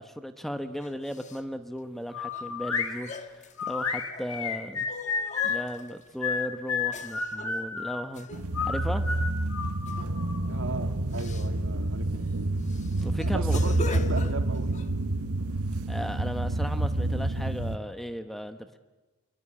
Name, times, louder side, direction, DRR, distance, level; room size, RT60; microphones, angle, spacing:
voice 1, 0.0-4.9 5.4-8.3 8.6-9.0 13.0-13.7 15.9-18.8, equal, ahead, 9 dB, 1.0 m, -36 dB
sound 1, 0.8-1.4 2.3-2.4 2.9-4.3 4.9-6.0 6.9-7.6 8.1-8.5 9.9-10.1 10.4-10.6 11.1-11.5 12.1-12.2 12.6-14.9, left 3 dB, 35° left, 1.4 m, -41 dB
sound 2, 2.1-2.9 3.6-5.7 6.2-8.0 8.5-10.4, left 6 dB, 90° left, 3.1 m, -31 dB
Thwang Stab, 8.3-17.8, right 2 dB, 85° right, 1.3 m, -28 dB
voice 2, 10.5-12.1 13.2-14.7, right 3 dB, 65° right, 6 dB, 2.4 m, -36 dB
27.5 x 23.5 x 8.7 m, 1.2 s
head